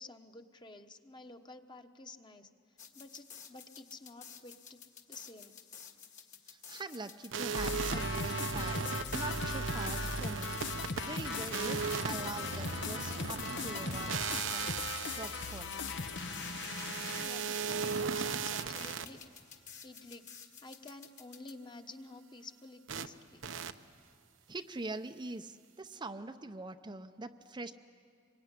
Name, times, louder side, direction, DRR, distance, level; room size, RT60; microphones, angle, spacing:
voice 1, 0.0-2.5 2.9-4.8 5.1-5.5 17.1-19.2 19.5-20.2 20.6-23.4, left 2 dB, 25° left, 6 dB, 1.3 m, -51 dB
sound 1, 2.8-21.5, left 7 dB, 40° left, 1.9 m, -52 dB
voice 2, 6.5-10.6 11.0-14.7 15.2-15.7 24.5-27.7, right 2 dB, 25° right, 7 dB, 0.6 m, -44 dB
sound 2, 7.3-19.1 22.9-23.1 23.4-23.7, right 5 dB, 80° right, 0.9 m, -37 dB
sound 3, 7.6-17.3, left 4 dB, 65° left, 1.0 m, -39 dB
26.0 x 23.0 x 9.9 m, 2.3 s
head